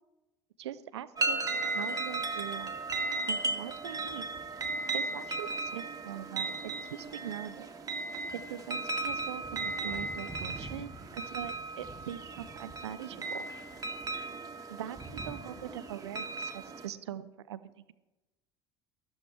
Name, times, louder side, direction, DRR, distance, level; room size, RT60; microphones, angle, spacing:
voice 1, 0.6-2.8 3.3-4.3 4.9-7.7 8.3-13.5 14.7-17.9, right 11 dB, 70° right, 15 dB, 0.7 m, -42 dB
sound 1, 1.2-16.9, right 3 dB, 25° right, 1.6 m, -36 dB
13.0 x 13.0 x 4.4 m, 1.0 s
figure-of-eight pair, 70°, 15 cm